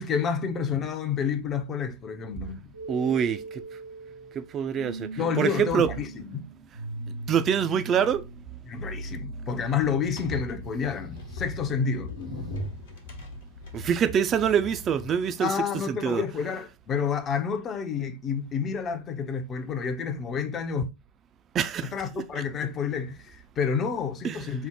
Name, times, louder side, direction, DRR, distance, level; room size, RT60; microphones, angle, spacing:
voice 1, 0.0-2.7 5.2-6.4 8.7-12.1 15.4-20.9 21.9-24.7, left 6 dB, 25° left, 0.5 m, -29 dB
sound 1, 2.7-10.6, right 2 dB, 85° right, 0.5 m, -40 dB
voice 2, 2.9-3.4 4.5-5.1 5.4-5.9 7.3-8.2 13.7-16.2 21.5-21.9 22.3-22.4 24.2-24.5, right 8 dB, 25° right, 0.3 m, -25 dB
sound 2, 9.8-15.2, left 2 dB, 60° left, 1.0 m, -39 dB
4.4 x 2.0 x 3.7 m
figure-of-eight pair, 90°, 0 cm